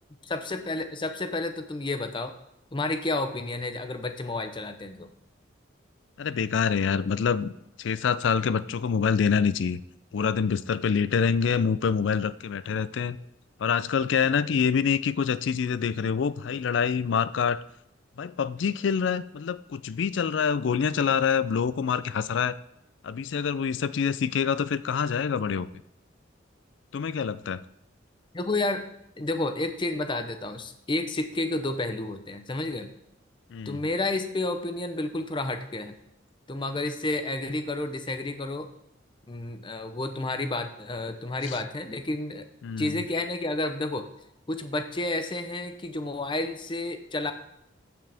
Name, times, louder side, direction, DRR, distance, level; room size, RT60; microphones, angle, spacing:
voice 1, 0.2-2.3 2.7-5.1 28.3-28.9 29.2-32.9 33.7-36.0 36.5-38.7 39.3-42.4 42.8-44.1 44.5-47.3, left 2 dB, 25° left, 8 dB, 0.6 m, -30 dB
voice 2, 6.2-7.5 7.8-9.8 10.1-13.2 13.6-17.6 18.2-22.6 23.0-25.7 26.9-27.6 33.5-33.8 41.5-41.6 42.6-43.0, left 6 dB, 70° left, 16 dB, 0.4 m, -26 dB
13.5 x 6.0 x 3.4 m, 0.80 s
head